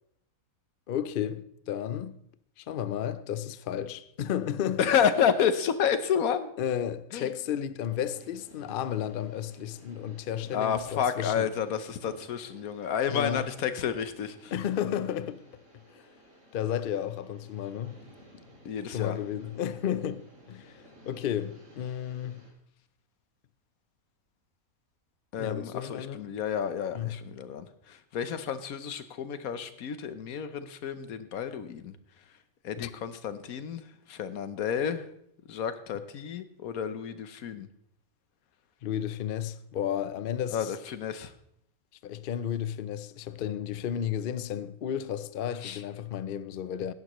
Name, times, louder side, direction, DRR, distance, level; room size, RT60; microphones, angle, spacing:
voice 1, 0.9-2.1 2.6-4.9 6.6-11.4 13.1-13.5 14.5-15.4 15.9-16.0 16.5-18.0 18.3-18.4 18.9-22.5 25.4-26.2 26.9-27.2 32.8-32.9 38.8-40.7 42.0-46.9, left 9 dB, 60° left, 0.6 m, -33 dB
voice 2, 4.8-6.5 7.1-7.3 10.5-14.5 18.6-19.2 25.3-32.0 32.6-35.1 35.5-37.7 40.5-41.3 45.6-45.8, left 8 dB, 80° left, 1.3 m, -30 dB
sound 1, 7.9-22.5, equal, 60° right, 3.2 m, -56 dB
16.5 x 10.5 x 3.1 m
omnidirectional pair, 1.5 m